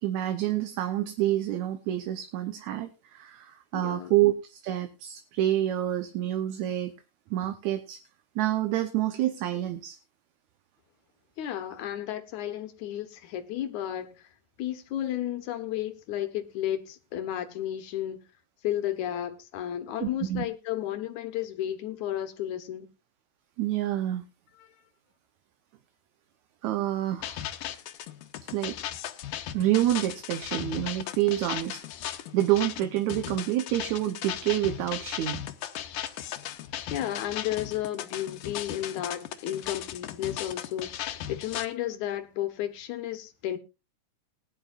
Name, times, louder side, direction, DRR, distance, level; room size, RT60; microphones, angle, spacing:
voice 1, 0.0-6.9 7.3-8.0 8.4-10.0 20.0-20.5 23.6-24.3 26.6-27.4 28.5-28.8 29.5-31.8 32.3-35.4, right 13 dB, 70° right, 2.1 m, -28 dB
voice 2, 3.7-4.1 11.4-14.3 14.6-18.2 18.6-22.9 24.7-24.8 36.9-43.6, left 12 dB, 70° left, 2.4 m, -33 dB
sound 1, 27.2-41.7, left 11 dB, 90° left, 2.4 m, -37 dB
20.0 x 10.0 x 2.5 m
omnidirectional pair, 3.6 m